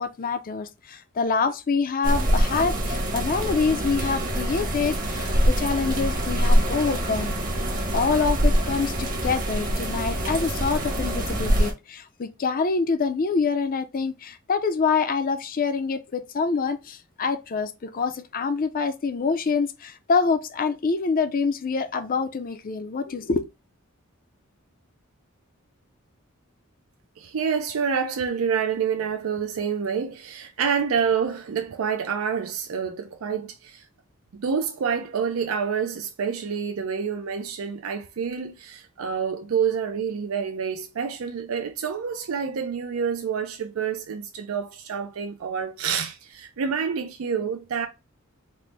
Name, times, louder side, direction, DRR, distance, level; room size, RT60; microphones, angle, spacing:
voice 1, 0.0-7.4 7.9-23.4, left 4 dB, 45° left, 0.5 m, -26 dB
sound 1, 2.0-11.7, equal, 40° right, 1.0 m, -24 dB
voice 2, 27.2-33.8 34.3-47.9, right 6 dB, 75° right, 0.4 m, -28 dB
4.2 x 2.1 x 3.2 m
head